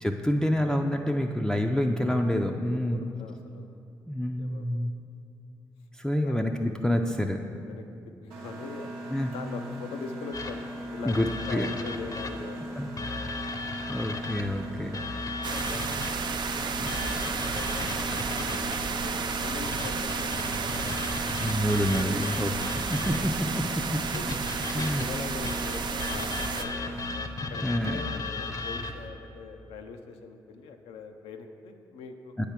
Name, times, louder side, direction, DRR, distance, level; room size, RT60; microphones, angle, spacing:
voice 1, 0.0-3.0 4.1-4.9 6.0-7.4 9.1-9.3 11.0-11.7 12.8-13.5 13.9-15.0 16.8-17.0 21.4-23.6 23.9-24.0 24.7-25.0 27.6-28.0 32.4-32.5, equal, 5° left, 2 dB, 0.5 m, -28 dB
voice 2, 2.8-3.7 4.4-4.8 6.2-6.4 7.6-7.8 8.2-10.6 10.9-13.1 14.1-14.2 15.2-16.2 16.9-21.4 23.5-23.8 24.1-24.2 24.8-27.0 27.5-32.4, left 4 dB, 80° left, 5 dB, 0.5 m, -42 dB
Mechanisms, 8.3-27.2, equal, 90° right, 0.8 m, -39 dB
sound 1, 10.3-12.6 13.0-16.3 16.9-18.9 19.7-23.4 24.1-29.1, left 3 dB, 40° left, 0.7 m, -37 dB
sound 2, 15.4-26.6, right 5 dB, 50° right, 0.4 m, -32 dB
8.3 x 3.5 x 5.8 m, 2.6 s
hypercardioid pair, 45°, 10 cm